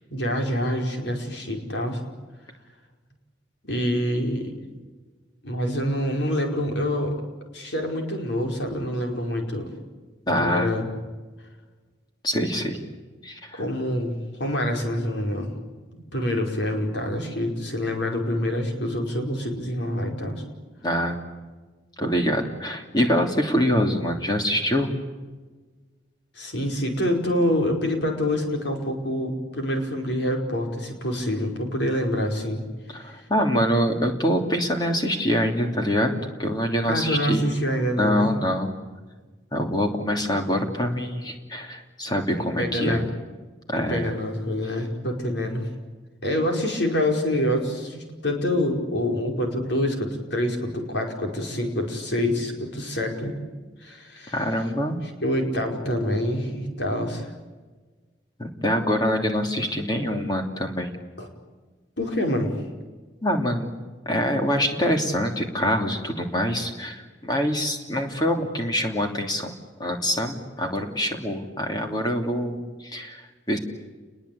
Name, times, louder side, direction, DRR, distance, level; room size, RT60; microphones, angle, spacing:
voice 1, 0.1-2.0 3.7-4.5 5.4-7.1 7.5-9.7 10.3-10.9 13.6-14.1 14.4-15.5 16.0-20.4 26.4-32.6 33.0-33.2 36.9-38.3 42.4-43.1 43.8-45.7 46.2-53.4 53.8-54.3 55.2-57.3 61.2-61.3 62.0-62.6, left 1 dB, 70° left, 2 dB, 5.1 m, -26 dB
voice 2, 10.3-10.7 12.2-12.8 13.2-13.6 20.8-21.2 22.0-24.9 32.9-37.4 38.0-38.7 39.5-43.0 43.7-44.1 54.3-55.0 58.4-60.9 63.2-63.7 64.0-73.6, equal, 20° left, 3 dB, 3.0 m, -25 dB
29.5 x 21.5 x 8.6 m, 1.3 s
head